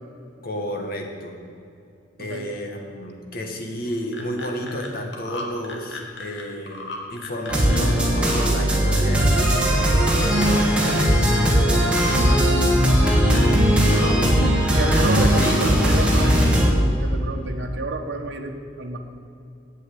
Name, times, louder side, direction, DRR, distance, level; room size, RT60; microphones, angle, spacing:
voice 1, 0.4-1.4 2.2-12.4 13.8-14.4 15.2-15.6, equal, 50° left, 2 dB, 1.6 m, -31 dB
sound 1, 3.9-4.9 5.1-7.9 8.2-9.4 9.7-10.2 10.5-11.4 11.8-12.4 12.8-13.5 13.8-14.1 14.4-15.7 15.9-16.5, left 2 dB, 70° left, 1.7 m, -37 dB
sound 2, 7.5-16.7, equal, 5° right, 2.0 m, -18 dB
voice 2, 13.9-14.3 14.7-19.0, right 2 dB, 65° right, 2 dB, 1.2 m, -30 dB
8.6 x 8.2 x 8.6 m, 2.6 s
head